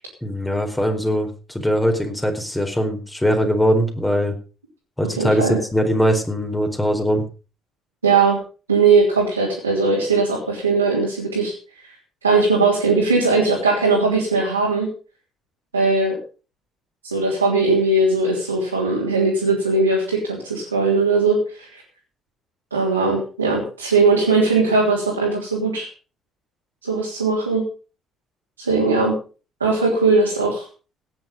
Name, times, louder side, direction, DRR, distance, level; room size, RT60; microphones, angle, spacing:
voice 1, 0.2-4.3 5.0-7.2, equal, 10° left, 4 dB, 4.4 m, -21 dB
voice 2, 5.2-5.6 8.0-8.4 8.7-11.5 12.2-14.9 15.7-16.2 17.0-21.8 22.7-25.9 26.8-27.6 28.6-29.1 29.6-30.6, right 3 dB, 90° right, -3 dB, 3.2 m, -19 dB
17.5 x 9.5 x 5.4 m, 0.36 s
figure-of-eight pair, 50°, 0 cm